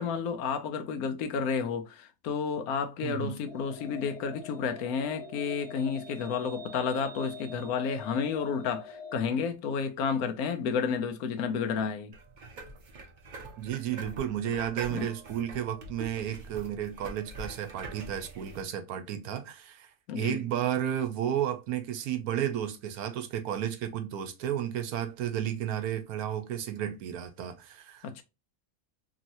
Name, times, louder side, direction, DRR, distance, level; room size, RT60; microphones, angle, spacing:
voice 1, 0.0-12.1 14.9-15.1 20.1-20.4 28.0-28.2, left 6 dB, 75° left, 1.0 m, -31 dB
voice 2, 3.0-3.4 13.6-19.9 20.2-28.2, right 10 dB, 75° right, 1.1 m, -32 dB
sound 1, 3.5-9.2, left 3 dB, 30° left, 0.4 m, -44 dB
sound 2, 12.1-18.6, right 3 dB, 55° right, 0.5 m, -44 dB
3.1 x 2.8 x 2.5 m
omnidirectional pair, 1.6 m